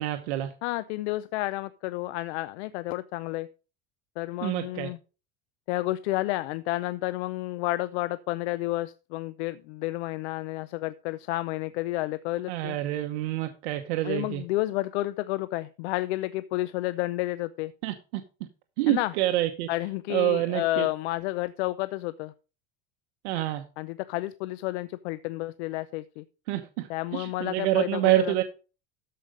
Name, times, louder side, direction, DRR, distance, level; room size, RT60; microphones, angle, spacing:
voice 1, 0.0-0.5 4.4-4.9 12.5-14.4 17.8-18.2 18.8-19.7 20.1-20.9 23.2-23.6 26.5-28.4, right 14 dB, 90° right, 1.1 m, -27 dB
voice 2, 0.6-3.5 4.2-5.0 5.7-12.8 14.0-17.7 18.9-19.1 19.7-22.3 23.8-26.2 26.9-28.3, left 18 dB, 85° left, 0.6 m, -31 dB
13.5 x 5.1 x 5.1 m
cardioid pair, 150°, 32 cm